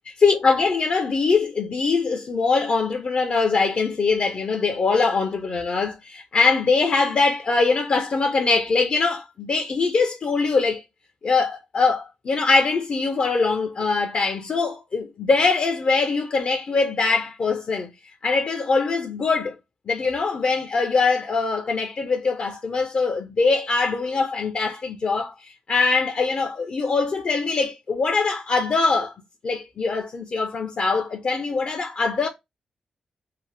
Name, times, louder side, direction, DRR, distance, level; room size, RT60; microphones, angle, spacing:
voice 1, 0.2-10.8 11.2-17.9 18.2-19.5 19.9-25.3 25.7-29.1 29.4-32.3, left 4 dB, 55° left, 0.5 m, -22 dB
2.7 x 2.1 x 3.2 m
cardioid pair, 70°, 2 cm